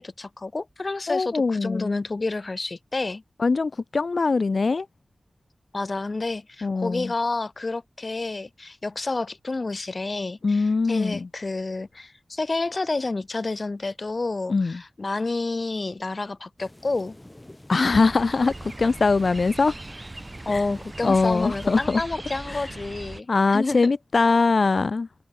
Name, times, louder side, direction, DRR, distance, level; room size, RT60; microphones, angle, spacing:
voice 1, 0.0-3.2 5.7-17.1 20.4-23.8, left 3 dB, 50° left, 3.5 m, -29 dB
voice 2, 1.1-2.0 3.4-4.9 6.6-7.1 10.4-11.3 14.5-14.8 17.7-19.7 20.5-20.6 21.0-22.0 22.5-22.7 23.3-25.1, left 4 dB, 65° left, 0.6 m, -22 dB
sound 1, 16.6-21.9, left 1 dB, 20° left, 6.3 m, -50 dB
sound 2, 17.9-23.2, right 2 dB, 30° right, 2.6 m, -39 dB
wide cardioid pair, 75°, 0 cm